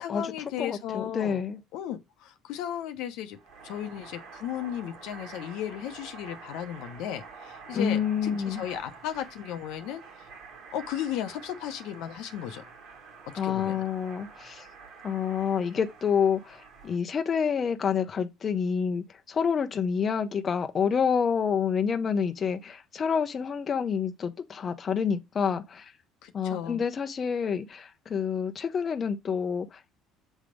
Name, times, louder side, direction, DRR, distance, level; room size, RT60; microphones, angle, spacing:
voice 1, 0.0-1.4 1.7-3.4 3.6-10.0 10.7-12.7 13.3-13.8 26.2-26.8, left 10 dB, 75° left, 0.9 m, -35 dB
voice 2, 0.6-1.6 7.7-8.6 13.3-14.7 15.0-25.9 26.3-29.9, left 7 dB, 40° left, 0.7 m, -28 dB
sound 1, 3.3-17.0, right 5 dB, 75° right, 2.1 m, -48 dB
7.2 x 3.5 x 5.1 m
supercardioid pair, 85°, 0 cm